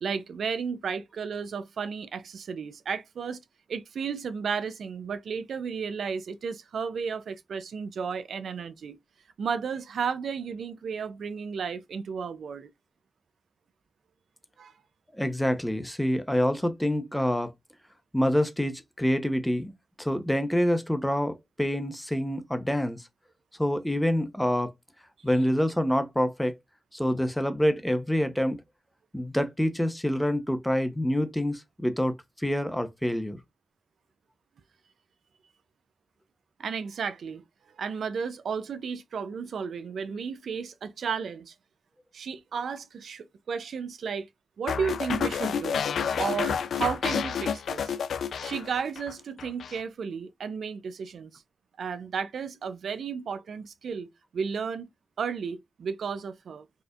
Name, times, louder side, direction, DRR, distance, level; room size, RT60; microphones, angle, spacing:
voice 1, 0.0-3.4 3.7-9.0 9.4-12.7 14.6-14.7 36.6-37.4 37.8-41.5 42.1-44.3 44.6-45.8 46.2-47.9 48.4-51.4 51.8-54.1 54.3-54.9 55.2-56.6, right 6 dB, 80° right, 0.4 m, -33 dB
voice 2, 15.1-17.5 18.1-19.7 20.0-23.0 23.6-24.7 25.2-26.5 26.9-28.6 29.1-33.4, equal, 5° left, 0.7 m, -26 dB
sound 1, 44.7-49.1 49.4-49.8, left 7 dB, 80° left, 0.3 m, -29 dB
4.3 x 2.5 x 2.4 m
cardioid pair, 60°, 0 cm